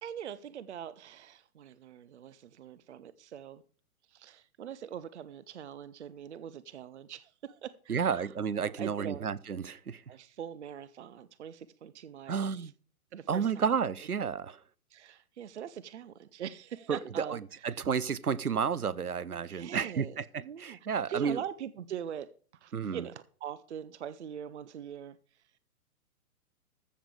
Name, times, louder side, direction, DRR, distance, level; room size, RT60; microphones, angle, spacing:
voice 1, 0.0-3.6 4.1-8.3 8.6-9.3 10.1-12.4 13.1-13.6 14.9-17.4 17.7-17.8 19.4-22.3 22.6-25.2, right 9 dB, 50° right, 0.8 m, -43 dB
voice 2, 7.9-10.0 12.3-12.7 13.3-14.6 16.9-21.4 22.7-23.1, right 6 dB, 80° right, 0.8 m, -31 dB
14.0 x 7.5 x 4.9 m
figure-of-eight pair, 120°, 44 cm